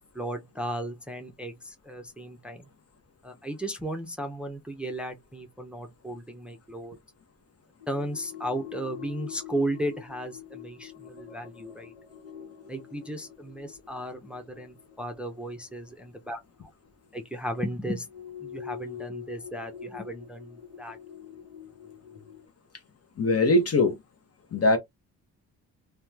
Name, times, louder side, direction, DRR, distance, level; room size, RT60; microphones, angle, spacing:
voice 1, 0.1-2.7 3.2-7.0 7.9-11.9 12.7-16.4 17.1-18.1 18.4-21.0, right 1 dB, 5° right, 0.6 m, -35 dB
sound 1, 7.8-17.0 18.0-22.5, left 9 dB, 80° left, 1.1 m, -45 dB
voice 2, 23.2-24.0 24.5-24.8, left 2 dB, 35° left, 0.8 m, -21 dB
2.9 x 2.2 x 2.3 m
supercardioid pair, 60°, 40 cm